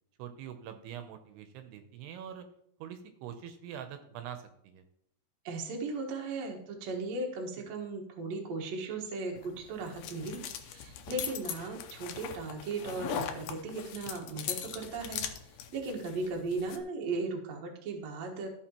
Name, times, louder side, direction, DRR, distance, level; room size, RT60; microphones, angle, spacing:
voice 1, 0.2-2.5 2.8-4.8, right 9 dB, 80° right, 8 dB, 2.7 m, -44 dB
voice 2, 5.4-15.2 15.7-18.5, right 3 dB, 60° right, 1 dB, 1.8 m, -37 dB
sound 1, 9.4-16.8, left 9 dB, 85° left, 1.9 m, -40 dB
14.5 x 5.6 x 2.9 m, 0.72 s
omnidirectional pair, 4.8 m